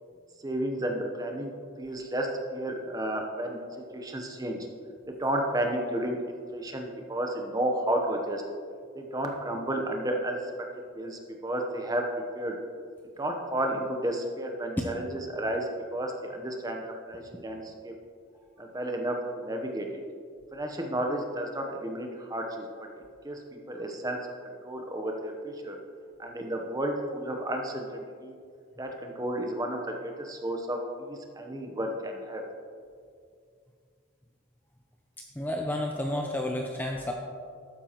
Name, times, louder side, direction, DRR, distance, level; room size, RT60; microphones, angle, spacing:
voice 1, 0.4-1.5 1.8-3.6 3.9-4.6 5.1-8.4 8.9-10.4 11.0-12.1 12.3-12.6 13.2-17.9 18.6-19.9 20.5-22.7 23.2-23.4 23.7-24.2 24.4-25.8 26.2-28.3 28.8-32.4, right 1 dB, 15° right, 2 dB, 0.8 m, -32 dB
voice 2, 35.4-37.1, left 1 dB, 10° left, 1 dB, 0.4 m, -31 dB
12.0 x 8.9 x 3.0 m, 2.3 s
head